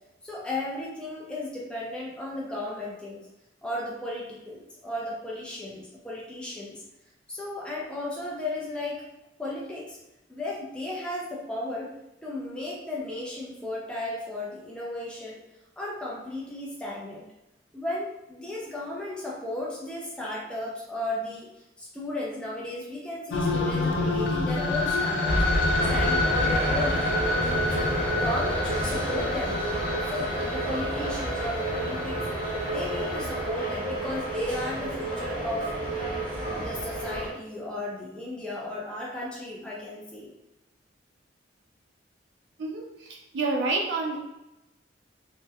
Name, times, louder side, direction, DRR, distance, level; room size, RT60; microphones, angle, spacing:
voice 1, 0.2-3.2 3.6-6.8 7.3-9.0 9.4-10.0 10.3-11.9 12.2-15.4 15.8-17.2 17.7-21.5 21.8-27.2 27.7-29.6 30.0-32.2 32.6-35.7 36.6-40.3, left 1 dB, 5° left, -5 dB, 0.3 m, -35 dB
sound 1, 23.3-33.4, left 2 dB, 85° left, 0.4 m, -29 dB
sound 2, 25.3-37.3, right 1 dB, 30° right, 0.6 m, -30 dB
voice 2, 42.6-44.2, right 3 dB, 75° right, -1 dB, 0.4 m, -29 dB
2.7 x 2.1 x 2.3 m, 0.94 s
head